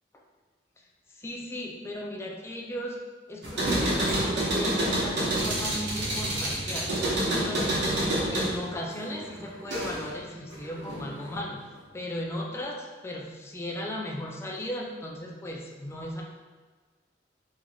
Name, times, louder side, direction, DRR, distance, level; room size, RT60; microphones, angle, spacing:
voice 1, 1.1-3.0 3.3-6.9 7.3-7.9 8.3-11.6 11.9-16.2, left 1 dB, 15° left, -1 dB, 0.3 m, -36 dB
sound 1, 3.4-10.1 10.5-11.3, right 1 dB, 70° right, 0.8 m, -28 dB
3.2 x 2.5 x 2.3 m, 1.4 s
head